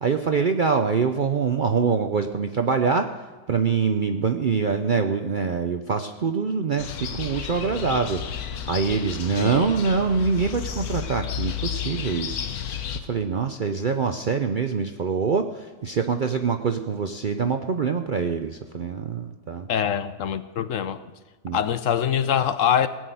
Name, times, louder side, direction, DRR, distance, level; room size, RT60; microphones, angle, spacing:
voice 1, 0.0-3.1 3.5-12.4 12.9-19.7 21.4-21.6, right 5 dB, 55° right, 0.5 m, -24 dB
sound 1, 6.8-13.0, left 9 dB, 85° left, 1.4 m, -32 dB
voice 2, 9.4-9.7 19.7-21.0 21.5-22.9, left 9 dB, 65° left, 1.0 m, -24 dB
18.0 x 6.4 x 9.2 m
omnidirectional pair, 1.6 m